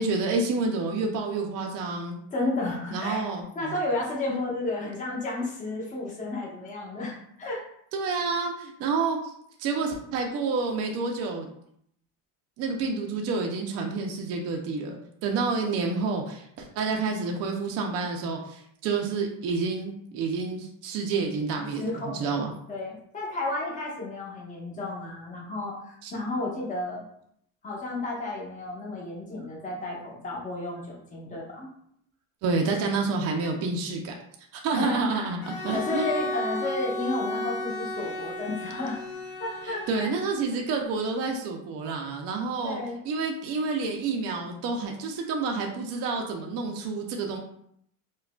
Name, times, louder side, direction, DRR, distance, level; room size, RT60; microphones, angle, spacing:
voice 1, 0.0-2.2 2.9-3.4 4.3-4.4 7.9-9.3 9.6-11.5 12.6-21.9 22.1-22.5 26.0-26.1 32.4-34.1 34.5-36.1 39.6-42.8 43.0-47.4, right 4 dB, 45° right, 1 dB, 0.5 m, -29 dB
voice 2, 2.3-3.2 3.5-7.6 21.8-22.3 22.7-27.0 27.6-31.7 34.7-35.3 35.7-39.0 39.4-40.1 42.6-43.0, left 2 dB, 20° left, -4 dB, 0.9 m, -32 dB
Bowed string instrument, 35.4-40.4, left 1 dB, 60° left, 0.7 m, -34 dB
4.7 x 2.3 x 2.2 m, 0.70 s
cardioid pair, 160°, 36 cm